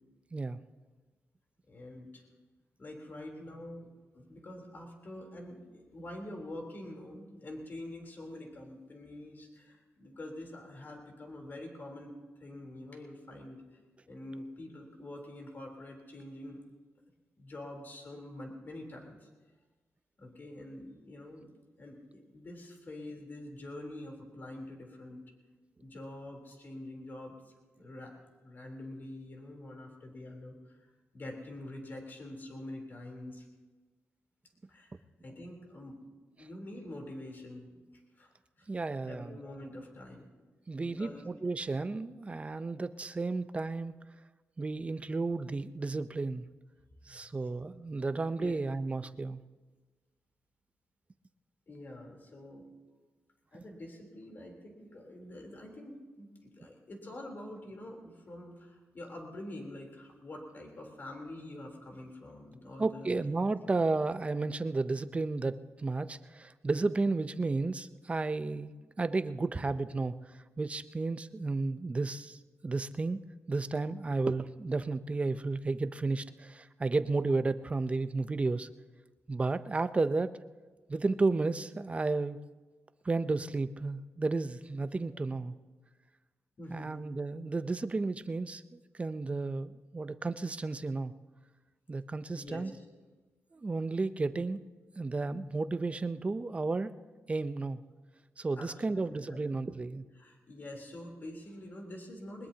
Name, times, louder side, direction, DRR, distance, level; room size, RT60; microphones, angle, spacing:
voice 1, 1.7-2.2 2.8-13.6 14.1-16.6 17.4-19.3 20.2-25.2 25.8-27.4 27.7-28.1 28.4-30.8 31.1-33.5 34.7-35.0 35.2-36.0 36.4-37.8 38.2-38.3 38.6-38.7 39.0-40.2 40.8-41.3 42.6-42.7 47.0-47.5 48.4-48.6 51.7-52.7 53.5-63.1 86.6-87.0 92.4-92.7 98.6-99.9 100.2-102.5, left 1 dB, 40° left, 1 dB, 3.6 m, -46 dB
voice 2, 38.7-39.4 40.7-43.9 44.6-46.4 47.1-49.4 62.8-68.7 69.0-70.1 70.6-73.2 73.5-78.7 79.3-80.3 80.9-82.4 83.0-85.5 86.7-91.1 91.9-92.7 93.5-94.6 95.0-96.9 97.3-97.8 98.4-100.0, right 3 dB, 25° right, 12 dB, 0.6 m, -32 dB
22.0 x 20.5 x 2.9 m, 1.3 s
wide cardioid pair, 110°, 5 cm